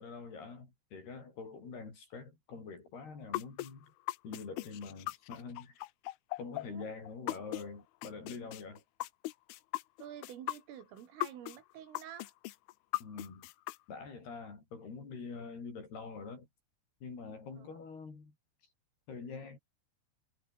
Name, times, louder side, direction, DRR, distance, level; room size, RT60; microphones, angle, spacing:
voice 1, 0.0-3.9 4.2-5.8 6.4-8.8 13.0-13.5 13.9-16.5 17.0-18.3 19.1-19.6, left 4 dB, 55° left, 8.5 m, -45 dB
sound 1, 3.3-7.6 8.0-11.6 11.9-13.8, left 18 dB, 80° left, 3.3 m, -38 dB
voice 2, 10.0-12.3 17.6-17.8, right 10 dB, 85° right, 5.4 m, -49 dB
omnidirectional pair, 5.7 m